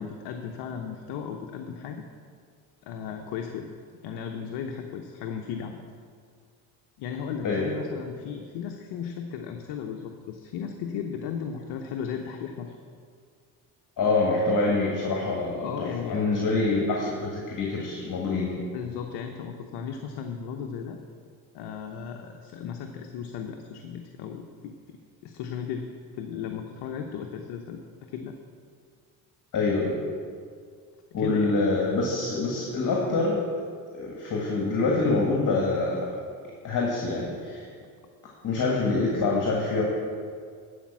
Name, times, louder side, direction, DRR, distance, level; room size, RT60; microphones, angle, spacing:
voice 1, 0.0-2.0 2.8-3.7 4.0-5.8 7.0-12.8 15.6-16.3 18.5-21.0 21.5-25.0 25.2-28.4 31.2-31.6, left 7 dB, 65° left, 3 dB, 0.9 m, -35 dB
voice 2, 14.0-18.5 29.5-30.0 31.1-33.5 33.9-36.2 36.6-37.6 38.4-39.8, left 3 dB, 45° left, -2 dB, 2.0 m, -25 dB
11.5 x 5.2 x 7.3 m, 2.1 s
supercardioid pair, 70°, 43 cm